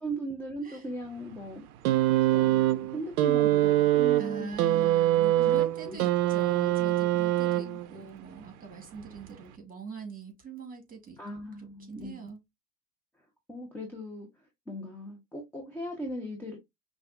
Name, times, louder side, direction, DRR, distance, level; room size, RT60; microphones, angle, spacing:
voice 1, 0.0-1.6 2.3-4.8 5.3-5.6 5.9-6.0 11.2-12.3 13.5-14.3 14.7-16.6, right 1 dB, 5° left, 0.9 m, -39 dB
sound 1, 1.8-8.0 9.1-9.2, right 14 dB, 60° right, 0.6 m, -24 dB
voice 2, 4.2-11.2 11.6-12.4, right 5 dB, 15° right, 1.8 m, -43 dB
5.4 x 2.5 x 2.5 m
hypercardioid pair, 80°, 49 cm